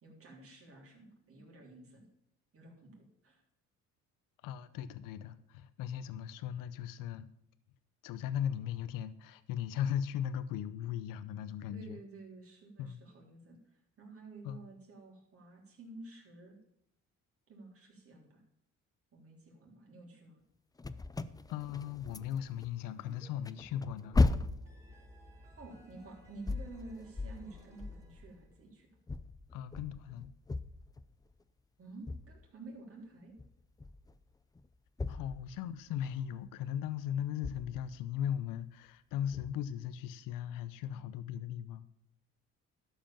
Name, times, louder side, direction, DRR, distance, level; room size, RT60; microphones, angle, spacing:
voice 1, 0.0-2.0 2.5-3.4 11.7-16.6 17.5-18.4 19.1-20.4 25.6-28.9 31.8-33.3 35.1-35.3, right 3 dB, 45° right, -1 dB, 3.6 m, -51 dB
voice 2, 4.4-7.3 8.0-12.0 12.8-13.0 14.4-14.7 21.5-24.2 29.5-30.3 35.1-41.9, left 10 dB, 85° left, 14 dB, 0.7 m, -38 dB
sound 1, 20.8-22.7 23.0-28.6 29.1-31.3 32.1-32.4 33.4-34.2 34.6-36.0 36.9-37.0 37.4-38.0 39.3-39.6, left 3 dB, 10° left, 0.4 m, -36 dB
sound 2, 23.0-23.3 23.6-28.6, equal, 10° right, 3.0 m, -60 dB
12.0 x 5.2 x 7.3 m, 0.74 s
cardioid pair, 90°, 32 cm